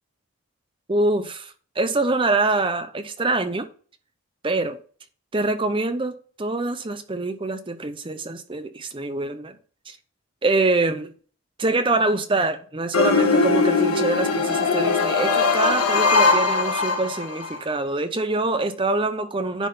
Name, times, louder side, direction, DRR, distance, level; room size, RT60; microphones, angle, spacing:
voice 1, 0.9-3.7 4.4-4.8 5.3-9.5 9.9-10.0 10.4-11.1 11.6-19.7, right 2 dB, 25° right, 0.6 m, -25 dB
sound 1, 12.9-17.6, left 4 dB, 75° left, 1.7 m, -20 dB
10.0 x 3.7 x 5.6 m
head